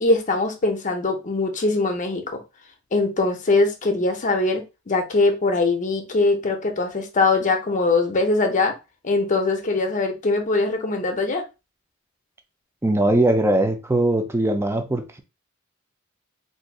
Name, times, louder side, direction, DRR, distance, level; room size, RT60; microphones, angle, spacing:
voice 1, 0.0-2.4 2.9-8.7 9.0-11.4, left 3 dB, 35° left, 5 dB, 0.6 m, -22 dB
voice 2, 12.8-15.2, right 1 dB, 10° right, 6 dB, 0.4 m, -20 dB
3.9 x 2.6 x 2.3 m, 0.27 s
head